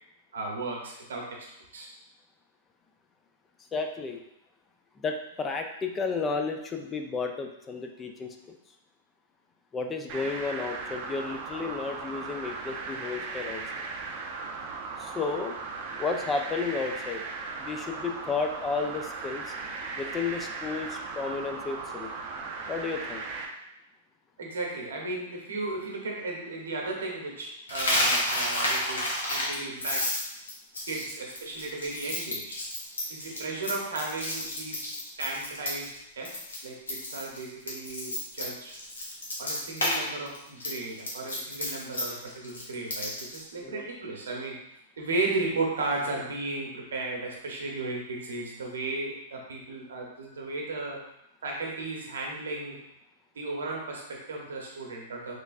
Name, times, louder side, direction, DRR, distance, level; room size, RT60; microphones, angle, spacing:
voice 1, 0.3-1.9 24.4-30.2 30.9-32.6 33.1-34.9 35.2-38.8 39.4-44.6 45.0-51.0 51.4-52.8 53.3-55.4, right 3 dB, 80° right, -1 dB, 0.9 m, -35 dB
voice 2, 3.7-4.2 5.0-8.6 9.7-13.9 15.0-15.5 16.0-17.2 17.6-19.5 20.0-22.1 22.7-23.2 43.6-43.9, left 4 dB, 20° left, 4 dB, 0.4 m, -32 dB
sound 1, 10.1-23.5, right 4 dB, 45° right, 0.5 m, -37 dB
Coin (dropping), 27.7-36.0 36.2-36.6 36.9-40.0 40.3-43.4, left 1 dB, 90° left, 0.9 m, -30 dB
3.2 x 3.2 x 2.4 m, 0.80 s
hypercardioid pair, 115°, 0 cm